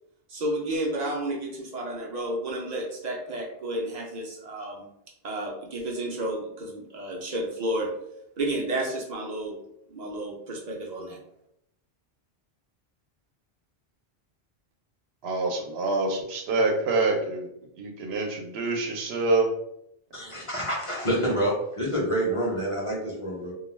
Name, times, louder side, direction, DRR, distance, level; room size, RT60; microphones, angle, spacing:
voice 1, 0.3-4.8 5.2-7.9 8.4-9.6 9.9-11.2, right 1 dB, 55° right, -1 dB, 0.5 m, -31 dB
voice 2, 15.2-17.5 17.8-19.5, right 3 dB, 85° right, 2 dB, 0.8 m, -26 dB
voice 3, 20.1-23.5, right 1 dB, 40° left, -4 dB, 0.6 m, -27 dB
2.3 x 2.2 x 3.1 m, 0.78 s
omnidirectional pair, 1.0 m